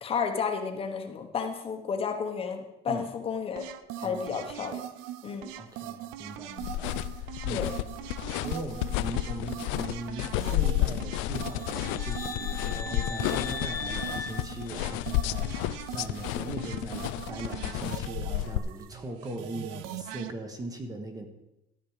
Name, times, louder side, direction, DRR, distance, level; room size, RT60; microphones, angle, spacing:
voice 1, 0.0-3.7 4.0-4.8 5.2-5.5 7.5-7.7, left 6 dB, 30° left, 4 dB, 1.1 m, -32 dB
sound 1, 3.6-20.3, right 12 dB, 75° right, 0.7 m, -41 dB
voice 2, 5.6-7.7 8.4-21.3, right 2 dB, 20° right, 5 dB, 1.2 m, -40 dB
sound 2, 6.6-18.6, left 16 dB, 75° left, 0.5 m, -31 dB
sound 3, 11.3-15.4, left 4 dB, 15° left, 0.5 m, -39 dB
13.5 x 8.5 x 4.9 m, 0.88 s
cardioid pair, 160°, 20 cm